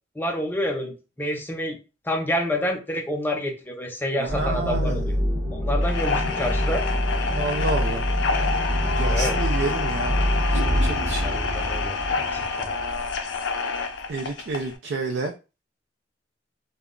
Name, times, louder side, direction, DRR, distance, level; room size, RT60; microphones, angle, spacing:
voice 1, 0.2-1.8 2.1-5.0 5.5-6.8 9.0-9.4 11.2-12.7, left 1 dB, 10° left, 2 dB, 0.5 m, -28 dB
voice 2, 4.2-5.1 7.4-8.1 8.8-11.5 14.1-15.3, right 3 dB, 65° right, 4 dB, 0.4 m, -30 dB
sound 1, 4.3-13.6, equal, 30° right, 0.7 m, -26 dB
sound 2, 5.8-14.7, left 4 dB, 75° left, 0.4 m, -28 dB
2.2 x 2.0 x 3.5 m, 0.30 s
head